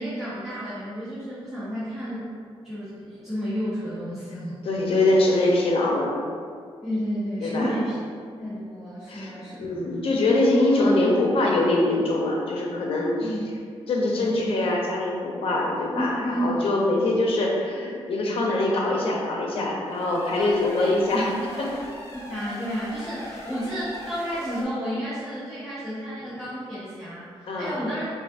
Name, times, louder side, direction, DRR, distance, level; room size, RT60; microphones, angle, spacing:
voice 1, 0.0-2.3 2.6-4.6 6.8-8.0 8.4-9.7 13.2-13.4 14.1-14.5 15.9-16.6 20.3-21.3 22.2-28.1, equal, ahead, -13 dB, 0.9 m, -31 dB
voice 2, 4.6-6.2 7.4-7.8 9.1-9.3 9.6-13.3 13.9-21.3 21.6-21.7 27.5-27.8, left 2 dB, 65° left, -2 dB, 0.7 m, -23 dB
sound 1, 19.8-24.6, left 1 dB, 25° left, 0.7 m, -40 dB
5.0 x 2.7 x 2.6 m, 2.2 s
wide cardioid pair, 145°, 10 cm